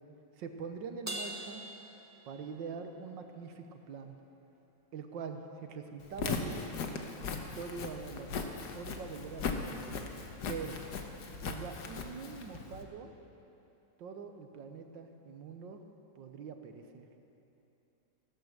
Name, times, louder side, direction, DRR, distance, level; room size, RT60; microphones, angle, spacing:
voice 1, 0.4-1.6 2.2-4.2 4.9-6.8 7.6-8.4 8.7-10.1 10.5-10.8 11.4-13.1 14.0-15.8 16.2-17.1, right 5 dB, 75° right, 6 dB, 1.6 m, -43 dB
Crash cymbal, 1.1-2.8, right 1 dB, 10° right, 0.8 m, -42 dB
Walk footsteps, 6.0-12.8, left 5 dB, 60° left, 1.5 m, -39 dB
15.5 x 12.5 x 6.6 m, 2.9 s
omnidirectional pair, 2.1 m